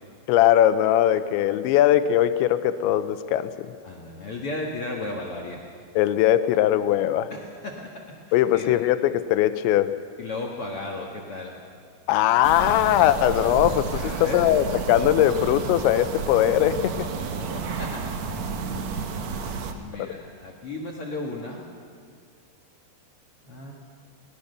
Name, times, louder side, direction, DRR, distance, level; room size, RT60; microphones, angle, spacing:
voice 1, 0.3-3.7 5.9-7.3 8.3-9.9 12.1-17.1 20.0-20.1, left 12 dB, 85° left, 12 dB, 3.1 m, -20 dB
voice 2, 3.8-5.6 7.3-8.7 10.2-11.6 13.8-14.5 17.0-18.2 19.7-21.6 23.4-23.7, left 2 dB, 60° left, -1 dB, 1.5 m, -35 dB
sound 1, 12.4-19.7, right 5 dB, 80° right, 1.5 m, -31 dB
22.5 x 18.5 x 6.7 m, 2.1 s
omnidirectional pair, 5.1 m